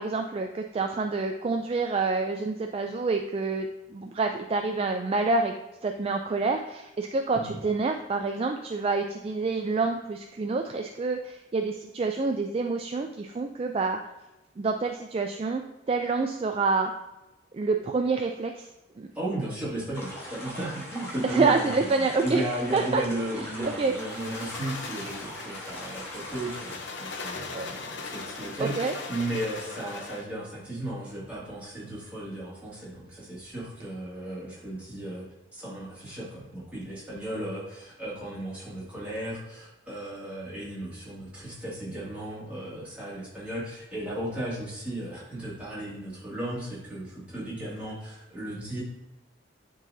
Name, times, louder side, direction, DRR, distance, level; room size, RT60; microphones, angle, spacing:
voice 1, 0.0-5.5 5.8-14.0 14.6-15.6 15.9-16.9 17.5-18.7 19.0-19.1 21.2-22.4 22.7-23.0 23.4-24.2 27.5-27.7 28.6-29.0, right 3 dB, 30° right, 4 dB, 0.3 m, -27 dB
voice 2, 19.1-35.2 35.5-48.8, right 1 dB, 10° right, -9 dB, 2.2 m, -35 dB
sound 1, 19.9-26.8, equal, 15° left, 1.4 m, -41 dB
sound 2, 23.8-30.3, left 4 dB, 70° left, 0.7 m, -39 dB
9.9 x 3.9 x 2.7 m, 0.97 s
head